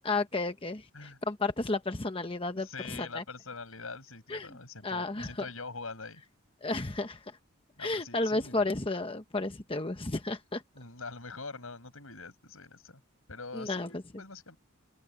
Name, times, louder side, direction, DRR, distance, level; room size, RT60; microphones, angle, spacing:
voice 1, 0.0-3.2 4.3-4.5 4.8-5.3 6.6-7.2 7.8-10.6 13.5-13.9, left 2 dB, 25° left, 1.1 m, -32 dB
voice 2, 2.5-6.2 7.8-8.7 10.7-13.0 13.3-14.6, left 4 dB, 85° left, 6.3 m, -44 dB
head